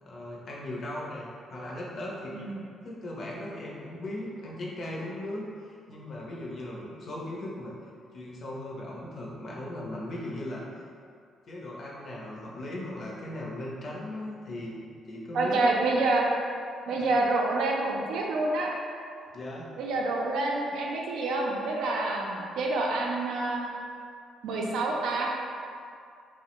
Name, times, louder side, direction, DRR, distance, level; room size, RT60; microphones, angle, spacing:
voice 1, 0.0-2.4 2.8-7.7 8.1-10.9 11.5-15.5 17.0-17.1 19.3-19.7, left 1 dB, 45° left, -4 dB, 0.5 m, -38 dB
voice 2, 15.3-16.3 16.9-18.7 19.8-23.7 24.4-25.3, right 2 dB, 85° right, -2 dB, 0.4 m, -27 dB
3.2 x 2.1 x 2.9 m, 2.3 s
cardioid pair, 140°, 0 cm